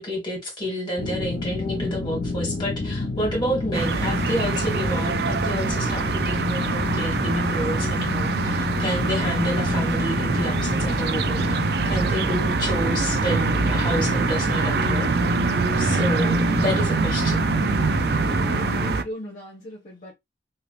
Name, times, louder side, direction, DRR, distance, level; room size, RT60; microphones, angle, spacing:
voice 1, 0.0-11.6 11.9-15.1 15.8-17.4, equal, 25° left, 1.9 m, -29 dB
sound 1, 1.0-18.9, left 3 dB, 65° left, 0.7 m, -28 dB
sound 2, 3.7-19.0, right 4 dB, 60° right, 0.4 m, -24 dB
voice 2, 18.0-20.1, equal, 45° left, 1.2 m, -38 dB
2.9 x 2.8 x 3.1 m
head